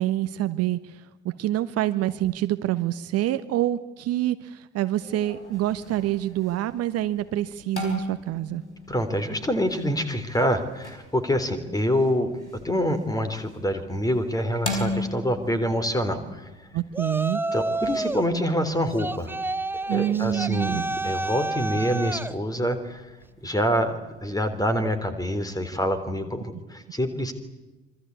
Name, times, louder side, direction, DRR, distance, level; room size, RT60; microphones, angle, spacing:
voice 1, 0.0-8.6 16.7-17.4 19.9-20.8, right 13 dB, 45° right, 12 dB, 1.2 m, -26 dB
sound 1, 5.0-24.9, left 1 dB, 90° left, 4.5 m, -40 dB
voice 2, 8.9-12.3 12.6-16.5 17.5-19.3 19.9-23.1 23.4-23.9 24.2-27.3, equal, 10° left, 10 dB, 3.8 m, -26 dB
Yell, 16.9-18.3 19.0-22.4, right 2 dB, 5° right, 0.9 m, -29 dB
25.5 x 25.5 x 8.5 m, 1.1 s
figure-of-eight pair, 60°, 34 cm